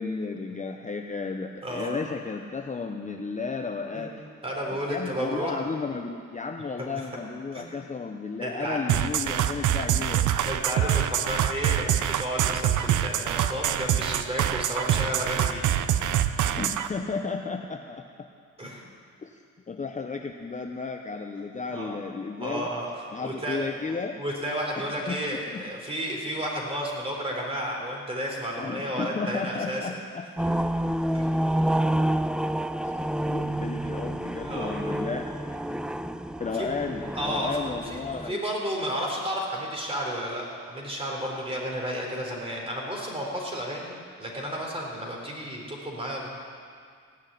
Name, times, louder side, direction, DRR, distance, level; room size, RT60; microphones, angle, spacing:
voice 1, 0.0-4.1 4.9-10.3 16.6-18.3 19.2-22.7 23.1-24.1 24.8-25.2 25.5-25.6 28.6-30.5 32.8-33.0 33.3-35.2 36.4-38.4, left 4 dB, 25° left, 3 dB, 0.8 m, -33 dB
voice 2, 1.6-1.9 3.9-4.1 4.4-5.5 7.0-7.1 7.5-7.7 8.4-8.8 10.4-15.6 18.6-18.8 21.7-21.9 22.4-23.7 24.2-29.9 31.1-31.3 34.3-34.8 36.5-36.7 37.1-38.0 38.2-43.9 44.2-46.3, equal, 20° right, -1 dB, 3.9 m, -32 dB
sound 1, 8.9-16.9, right 11 dB, 75° right, 0.7 m, -25 dB
sound 2, 30.4-38.3, right 1 dB, 5° right, 0.3 m, -28 dB
16.5 x 6.3 x 10.0 m, 2.2 s
cardioid pair, 90°, 30 cm